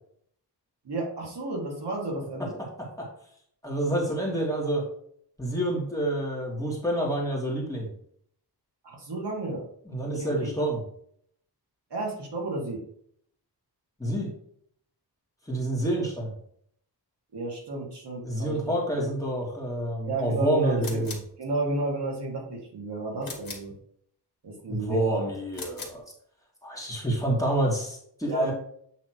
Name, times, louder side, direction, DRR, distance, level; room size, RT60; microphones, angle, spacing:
voice 1, 0.8-2.5 8.8-9.6 10.2-10.5 11.9-12.8 17.3-18.6 18.9-19.1 20.0-21.1 21.4-23.7 24.4-25.3 28.3-28.5, right 2 dB, 75° right, -2 dB, 2.3 m, -32 dB
voice 2, 2.4-3.1 3.6-4.8 5.4-7.9 9.9-10.8 14.0-14.3 15.5-16.3 18.2-21.2 24.7-26.0 26.6-28.5, right 1 dB, 10° left, -3 dB, 1.9 m, -28 dB
sound 1, 20.8-21.3 23.2-23.7 25.5-26.0, left 3 dB, 55° left, 1.9 m, -40 dB
8.2 x 3.2 x 4.5 m, 0.65 s
wide cardioid pair, 150°, 41 cm